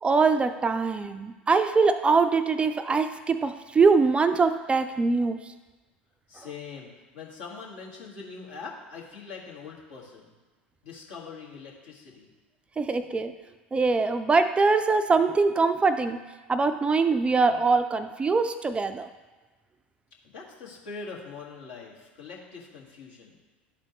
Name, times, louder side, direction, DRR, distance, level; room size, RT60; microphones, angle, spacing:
voice 1, 0.0-5.4 12.8-13.4 13.7-16.2 16.5-19.1, right 4 dB, 20° right, 10 dB, 0.3 m, -23 dB
voice 2, 6.3-10.3 10.8-12.3 20.2-23.4, left 5 dB, 70° left, -4 dB, 1.8 m, -42 dB
11.5 x 4.3 x 3.0 m, 1.2 s
figure-of-eight pair, 75°, 6 cm